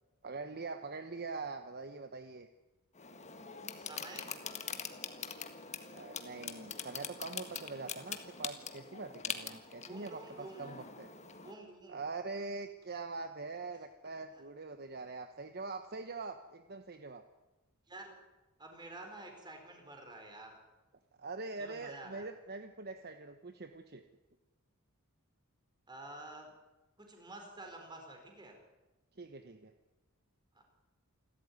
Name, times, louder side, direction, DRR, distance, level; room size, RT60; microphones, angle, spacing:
voice 1, 0.2-2.5 5.9-11.1 11.9-17.2 21.2-24.0 29.2-29.7, right 3 dB, 45° right, 8 dB, 1.1 m, -43 dB
sound 1, 2.9-11.5, left 6 dB, 30° left, 1.7 m, -44 dB
voice 2, 3.7-4.3 9.9-10.9 11.4-12.0 14.3-14.4 17.9-18.2 18.6-20.6 21.6-22.2 25.9-26.5 27.0-28.6 30.5-30.6, right 2 dB, 20° right, 3 dB, 4.7 m, -50 dB
28.0 x 13.0 x 9.6 m, 1.1 s
head